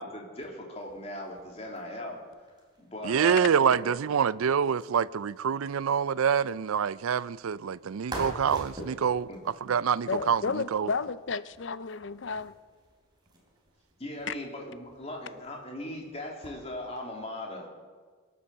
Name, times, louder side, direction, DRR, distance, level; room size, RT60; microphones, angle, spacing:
voice 1, 0.0-2.2 2.8-3.9 9.3-9.4 14.0-17.8, left 1 dB, 30° left, 2.7 m, -39 dB
sound 1, 0.7-17.0, right 1 dB, 20° right, 3.2 m, -48 dB
voice 2, 3.0-9.3 9.6-10.9, right 7 dB, 85° right, 0.4 m, -26 dB
voice 3, 10.1-12.5 14.3-14.4, left 4 dB, 60° left, 0.5 m, -32 dB
23.5 x 8.6 x 6.8 m
head